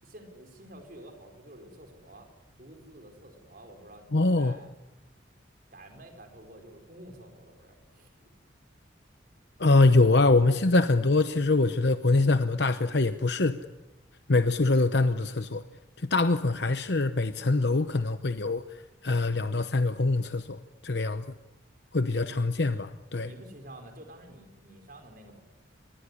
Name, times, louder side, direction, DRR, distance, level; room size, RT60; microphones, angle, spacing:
voice 1, 0.0-2.3 2.6-4.7 5.7-8.2 22.1-22.7 23.2-25.4, right 1 dB, 45° right, 4.7 m, -49 dB
voice 2, 4.1-4.6 9.6-13.6 14.3-15.6 16.0-18.6 19.0-21.2 21.9-23.3, left 3 dB, 55° left, 0.9 m, -24 dB
26.5 x 21.0 x 9.9 m
head